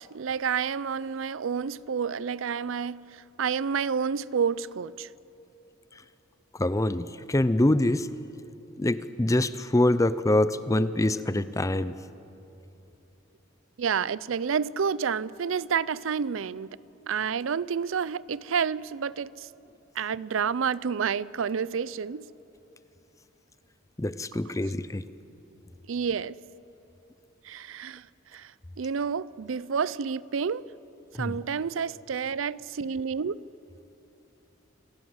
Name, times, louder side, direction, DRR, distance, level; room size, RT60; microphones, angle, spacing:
voice 1, 0.0-5.1 13.8-16.7 17.1-19.5 20.0-22.3 25.9-26.4 27.4-28.1 28.3-28.5 28.8-30.6 31.2-33.3, right 6 dB, 85° right, 0.5 m, -29 dB
voice 2, 6.6-8.1 8.8-11.9 24.0-25.0 31.2-31.4, left 1 dB, 15° left, 0.6 m, -25 dB
27.0 x 16.5 x 7.9 m
head